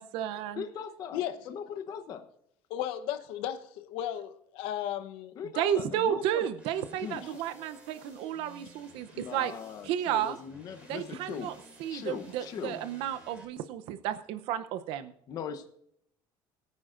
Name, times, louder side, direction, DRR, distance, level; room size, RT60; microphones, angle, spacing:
voice 1, 0.0-0.6 5.5-9.5 9.8-10.4 10.9-11.5 11.8-15.1, right 10 dB, 80° right, 0.6 m, -32 dB
voice 2, 0.6-2.2 5.4-6.4 7.0-7.2 9.1-11.5 11.9-12.8 15.3-15.7, left 7 dB, 45° left, 0.8 m, -40 dB
voice 3, 2.7-5.4 7.2-7.4, left 11 dB, 85° left, 0.9 m, -35 dB
sound 1, 6.6-13.4, right 1 dB, 15° right, 5.4 m, -54 dB
21.5 x 9.6 x 2.5 m
cardioid pair, 160°, 9 cm